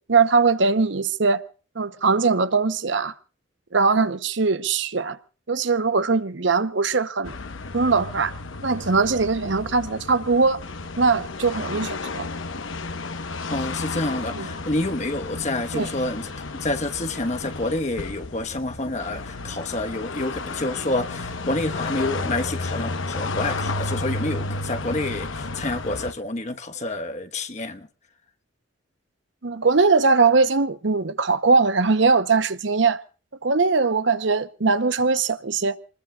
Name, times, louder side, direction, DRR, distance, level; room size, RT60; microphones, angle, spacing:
voice 1, 0.1-1.5 1.8-3.1 3.7-5.2 5.5-7.3 7.7-8.3 8.6-10.6 11.0-12.3 14.3-14.5 15.7-15.9 29.4-33.0 33.4-35.7, right 4 dB, 65° right, 0.9 m, -21 dB
sound 1, 7.2-26.1, left 3 dB, 75° left, 1.1 m, -32 dB
voice 2, 13.5-27.9, left 2 dB, 35° left, 1.2 m, -28 dB
27.5 x 20.5 x 2.4 m
head